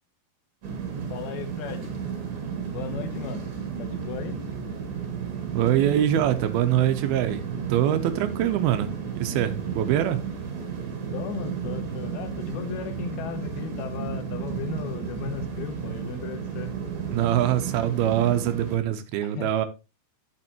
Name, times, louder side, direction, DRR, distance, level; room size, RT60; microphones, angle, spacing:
sound 1, 0.6-18.8, right 7 dB, 45° right, 2.5 m, -33 dB
voice 1, 1.1-1.9 2.7-3.5 3.8-4.4 11.1-16.7 19.2-19.5, left 8 dB, 75° left, 2.8 m, -36 dB
voice 2, 5.5-10.2 17.1-19.7, right 11 dB, 80° right, 2.5 m, -24 dB
11.0 x 6.4 x 2.9 m
omnidirectional pair, 4.6 m